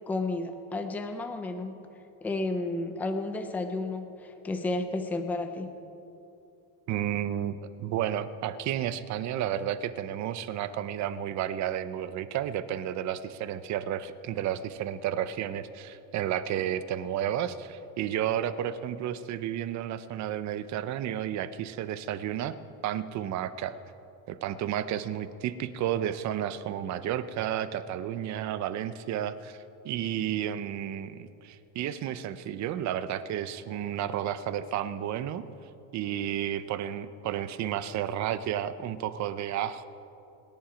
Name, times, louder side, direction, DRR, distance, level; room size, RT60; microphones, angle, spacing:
voice 1, 0.1-1.8 2.2-5.7, left 2 dB, 5° left, 6 dB, 0.3 m, -32 dB
voice 2, 6.9-22.6 22.8-23.7 24.3-35.5 35.9-39.8, right 10 dB, 35° right, 13 dB, 0.6 m, -32 dB
25.5 x 10.5 x 5.0 m, 2.8 s
cardioid pair, 160°, 48 cm